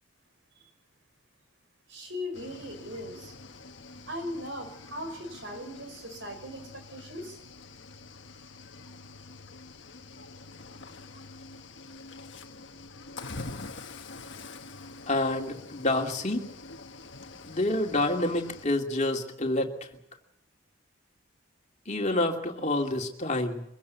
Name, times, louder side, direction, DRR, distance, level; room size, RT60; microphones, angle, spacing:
voice 1, 1.9-3.3 4.1-7.4, left 1 dB, 60° right, 6 dB, 5.7 m, -39 dB
Cricket / Waves surf, 2.3-18.7, left 3 dB, 60° left, 1.5 m, -46 dB
voice 2, 15.1-16.5 17.4-20.0 21.9-23.6, left 2 dB, 35° left, 2 dB, 2.6 m, -28 dB
24.0 x 16.0 x 8.2 m, 0.81 s
head